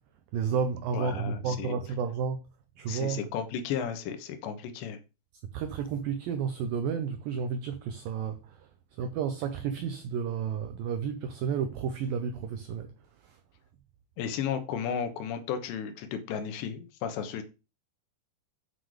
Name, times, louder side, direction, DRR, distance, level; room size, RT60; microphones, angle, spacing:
voice 1, 0.3-2.5 2.8-3.2 5.5-8.7 9.0-12.9 13.2-13.4, right 6 dB, 90° right, 2.0 m, -31 dB
voice 2, 0.9-1.8 2.9-5.0 14.2-17.4, left 8 dB, 80° left, 3.4 m, -34 dB
7.9 x 6.0 x 4.9 m
omnidirectional pair, 5.0 m